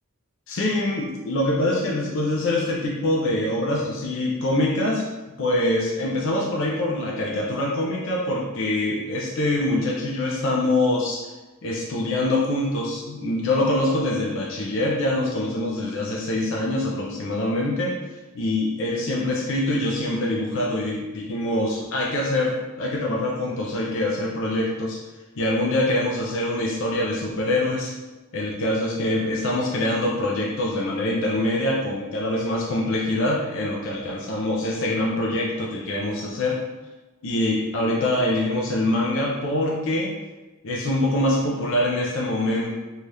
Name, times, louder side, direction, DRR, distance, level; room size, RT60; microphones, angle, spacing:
voice 1, 0.5-5.0 5.4-11.2 11.6-17.9 18.3-25.0 25.4-27.9 28.3-36.6 37.2-40.1 40.6-42.8, left 1 dB, 65° left, -3 dB, 0.5 m, -24 dB
2.7 x 2.3 x 3.3 m, 1.2 s
head